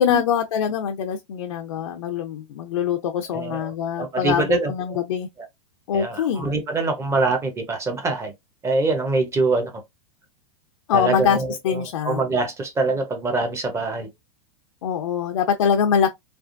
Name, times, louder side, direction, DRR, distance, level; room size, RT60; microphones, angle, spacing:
voice 1, 0.0-5.3 5.9-6.5 10.9-12.2 14.8-16.1, left 8 dB, 90° left, 0.6 m, -23 dB
voice 2, 3.3-3.7 4.0-4.7 5.9-8.3 8.6-9.7 10.9-14.1, right 3 dB, 15° right, 0.9 m, -24 dB
3.4 x 2.4 x 2.5 m
supercardioid pair, 140°, 17 cm